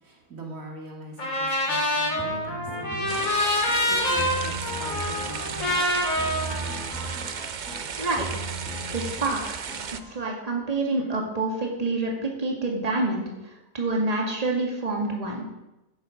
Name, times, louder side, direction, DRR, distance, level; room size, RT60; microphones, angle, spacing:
voice 1, 0.0-3.3 3.9-6.0 11.0-11.1, right 2 dB, 65° right, -1 dB, 2.9 m, -41 dB
Trumpet, 1.2-7.4, left 1 dB, 65° left, 3.5 m, -27 dB
sound 1, 2.2-10.1, right 2 dB, 5° left, 2.3 m, -38 dB
sound 2, 3.1-10.0, right 6 dB, 45° right, 0.6 m, -35 dB
voice 2, 8.0-8.5 8.9-9.6 10.1-15.5, right 2 dB, 25° right, 0 dB, 2.2 m, -27 dB
14.5 x 10.5 x 5.1 m, 0.98 s
omnidirectional pair, 1.5 m